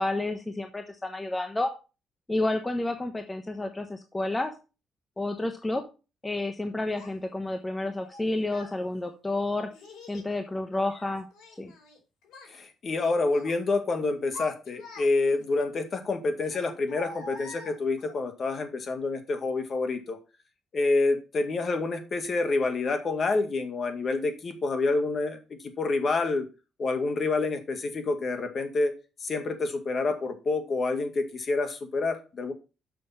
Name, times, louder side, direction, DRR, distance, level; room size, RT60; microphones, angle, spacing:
voice 1, 0.0-1.7 2.3-4.5 5.2-5.8 6.2-9.7 10.1-11.3 11.6-11.7, left 2 dB, 15° left, 6 dB, 1.1 m, -30 dB
Child speech kid speaking, 7.0-7.1 8.0-8.8 9.7-10.3 10.7-12.0 12.2-12.6 13.0-13.6 14.1-15.4 16.4-18.2, left 2 dB, 80° left, 4.7 m, -45 dB
voice 2, 12.5-20.2 20.7-26.5 26.8-28.9 29.2-32.5, left 3 dB, 45° left, 6 dB, 2.1 m, -28 dB
6.9 x 5.9 x 5.6 m, 0.31 s
cardioid pair, 90°, 0 cm